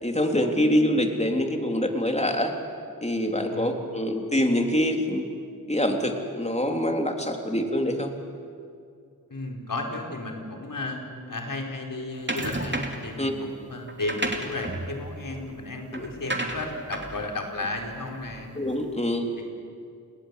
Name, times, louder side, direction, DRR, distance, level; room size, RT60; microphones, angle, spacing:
voice 1, 0.0-2.5 3.0-5.3 5.7-8.1 13.2-13.4 15.9-16.0 18.6-19.3, left 1 dB, 20° left, 3 dB, 3.7 m, -25 dB
voice 2, 9.3-11.0 11.3-18.5, left 2 dB, 65° left, 2 dB, 4.8 m, -33 dB
sound 1, 12.3-13.1 13.9-18.6, right 1 dB, 30° right, 3.1 m, -33 dB
29.5 x 20.0 x 8.5 m, 2.3 s
cardioid pair, 40°, 35 cm